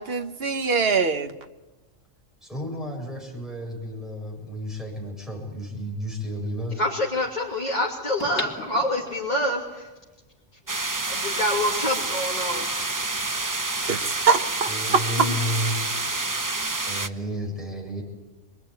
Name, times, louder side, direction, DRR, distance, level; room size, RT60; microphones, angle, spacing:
voice 1, 0.0-1.4 13.9-15.0, right 5 dB, 50° right, 8 dB, 1.4 m, -23 dB
voice 2, 2.4-6.8 14.7-18.0, equal, ahead, 0 dB, 7.7 m, -32 dB
sound 1, 4.6-4.7 8.2-9.5 10.0-10.1, left 3 dB, 75° left, 3.2 m, -36 dB
voice 3, 6.8-9.9 11.1-12.7 15.2-15.3, left 1 dB, 35° left, -4 dB, 2.9 m, -26 dB
sound 2, 10.7-17.1, right 2 dB, 20° right, 0.7 m, -28 dB
25.5 x 22.5 x 9.6 m, 1.2 s
omnidirectional pair, 1.3 m